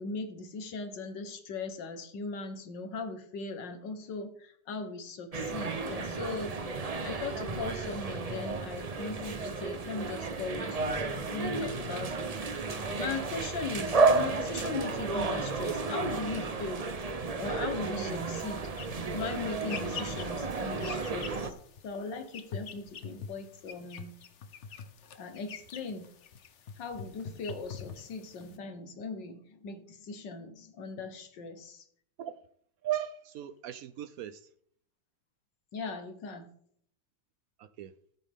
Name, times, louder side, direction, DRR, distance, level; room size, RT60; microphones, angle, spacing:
voice 1, 0.0-6.6 7.0-12.4 12.9-16.9 17.4-18.7 19.1-21.5 21.8-24.1 25.2-26.1 26.8-31.9 35.7-36.5, left 4 dB, 75° left, 8 dB, 1.9 m, -39 dB
sound 1, 5.3-21.5, right 3 dB, 50° right, 0.4 m, -32 dB
sound 2, 18.2-28.6, left 6 dB, 50° left, 1.0 m, -45 dB
voice 2, 32.8-34.4 37.6-37.9, right 12 dB, 75° right, 13 dB, 0.8 m, -37 dB
15.0 x 8.2 x 3.6 m, 0.64 s
omnidirectional pair, 2.0 m